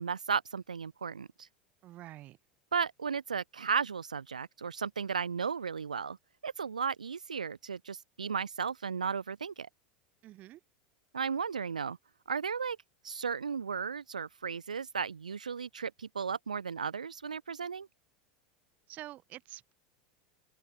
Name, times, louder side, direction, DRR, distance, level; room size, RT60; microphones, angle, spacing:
voice 1, 0.0-1.5 2.7-6.2 6.4-9.7 11.1-12.0 12.3-12.8 13.0-17.9, right 6 dB, 80° right, 0.5 m, -35 dB
voice 2, 1.8-2.4 10.2-10.6 18.9-19.7, right 15 dB, 40° right, 2.4 m, -47 dB
open air
figure-of-eight pair, 80°, 4 cm